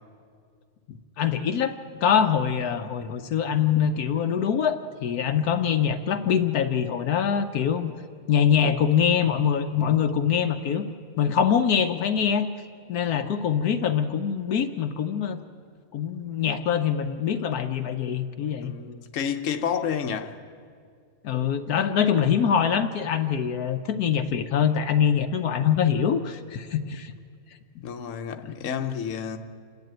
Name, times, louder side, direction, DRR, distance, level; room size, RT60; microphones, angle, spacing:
voice 1, 0.9-7.9 8.3-10.9 11.2-12.5 12.9-15.4 15.9-18.7 21.2-27.1 28.4-28.5, left 8 dB, 75° left, 1.3 m, -24 dB
voice 2, 18.6-20.4 27.8-29.4, left 7 dB, 55° left, 1.2 m, -30 dB
28.5 x 11.0 x 9.0 m
omnidirectional pair, 1.7 m